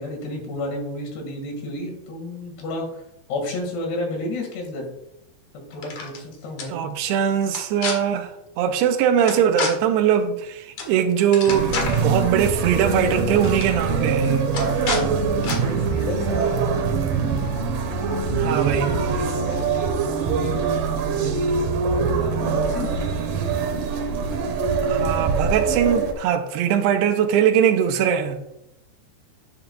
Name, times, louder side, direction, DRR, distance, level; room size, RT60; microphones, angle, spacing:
voice 1, 0.0-3.0 3.3-4.9 5.5-6.8 15.0-17.2 18.5-23.0, left 1 dB, 75° left, 4.1 m, -32 dB
sound 1, 5.7-6.2 6.6-6.7 7.5-7.9 9.3-9.7 10.8-10.9 11.2-12.0 13.0-13.1 13.4-13.7 14.5-15.0 15.4-15.6, left 4 dB, 55° left, 2.5 m, -28 dB
voice 2, 6.7-8.3 8.6-14.5 18.4-18.9 24.8-28.4, right 8 dB, 85° right, 2.7 m, -21 dB
sound 2, 11.5-26.1, right 5 dB, 65° right, 2.3 m, -23 dB
10.0 x 9.3 x 2.4 m
omnidirectional pair, 4.9 m